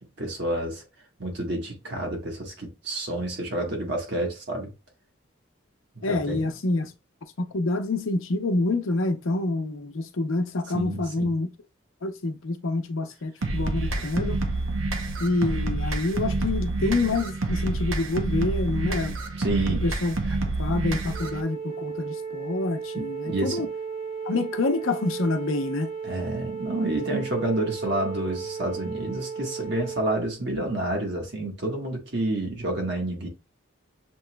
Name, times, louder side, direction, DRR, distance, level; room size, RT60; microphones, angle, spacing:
voice 1, 0.2-0.8 1.2-4.7 5.9-6.5 10.7-11.3 13.8-14.0 19.4-19.9 20.3-20.4 22.9-23.7 26.0-33.3, right 1 dB, 55° right, 1.5 m, -29 dB
voice 2, 6.0-6.9 7.4-11.5 12.0-14.4 15.2-19.2 19.8-20.1 20.6-23.7 24.3-25.9, left 2 dB, 80° left, 0.7 m, -27 dB
sound 1, 13.4-21.4, right 2 dB, 80° right, 0.7 m, -28 dB
Wind instrument woodwind instrument, 21.1-30.2, right 5 dB, 30° right, 0.9 m, -35 dB
6.8 x 3.0 x 2.2 m
head